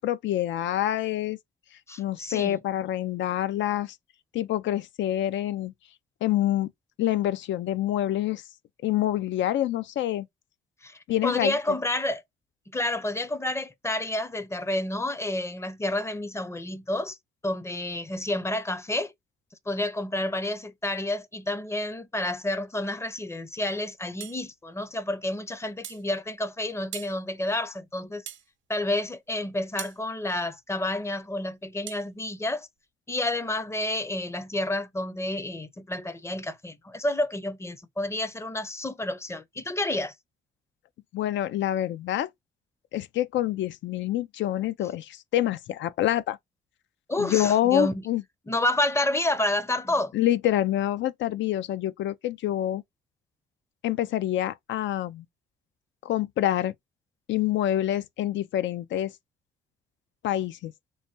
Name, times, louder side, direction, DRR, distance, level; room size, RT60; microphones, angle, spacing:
voice 1, 0.0-1.4 2.0-4.0 4.3-5.7 6.2-6.7 7.0-8.4 8.8-10.3 11.1-11.6 41.1-42.3 42.9-46.4 47.2-48.2 50.1-52.8 53.8-55.2 56.0-56.7 57.3-59.1 60.2-60.7, left 12 dB, 70° left, 0.4 m, -26 dB
voice 2, 1.9-2.6 10.8-12.2 12.7-17.2 17.4-19.1 19.7-28.3 28.7-32.7 33.1-40.1 47.1-48.0 48.5-50.1, left 1 dB, 15° left, 0.6 m, -29 dB
sound 1, 24.2-24.4 25.8-26.1 26.9-27.2 28.2-28.5 29.8-30.0 31.9-32.0, right 10 dB, 75° right, 0.5 m, -39 dB
3.2 x 2.2 x 2.6 m
cardioid pair, 90°, 20 cm